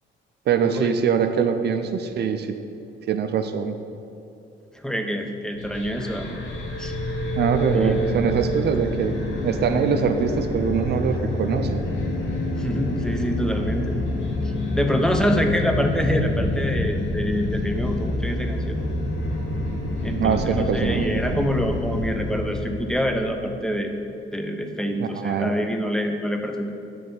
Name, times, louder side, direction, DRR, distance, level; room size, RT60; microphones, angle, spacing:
voice 1, 0.5-2.6 3.1-3.8 7.4-9.1 9.4-11.9 20.2-21.5 25.0-25.6, right 7 dB, 55° right, 7 dB, 0.5 m, -23 dB
voice 2, 4.7-6.3 6.8-6.9 7.7-8.0 12.6-14.0 14.7-18.8 20.0-23.9 24.3-26.7, equal, 5° left, 4 dB, 0.6 m, -26 dB
sound 1, 5.5-23.0, left 1 dB, 70° left, 1.1 m, -27 dB
7.0 x 3.3 x 5.4 m, 2.6 s
cardioid pair, 90°, 20 cm